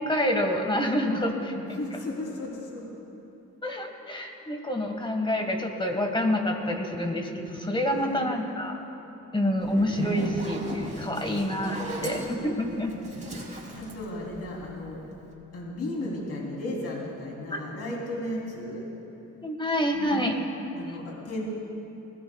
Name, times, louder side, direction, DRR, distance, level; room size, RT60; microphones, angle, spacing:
voice 1, 0.0-1.8 3.6-8.8 9.3-13.0 17.5-17.6 19.4-20.3, left 1 dB, 15° left, 3 dB, 1.7 m, -27 dB
voice 2, 1.6-2.8 7.7-8.3 10.9-11.3 11.6-15.0 15.5-18.9 19.9-20.2 20.7-21.5, left 1 dB, 55° left, -3 dB, 3.4 m, -36 dB
Zipper (clothing), 9.6-14.9, right 2 dB, 25° right, 3.1 m, -36 dB
21.0 x 16.5 x 2.4 m, 2.9 s
cardioid pair, 90°, 30 cm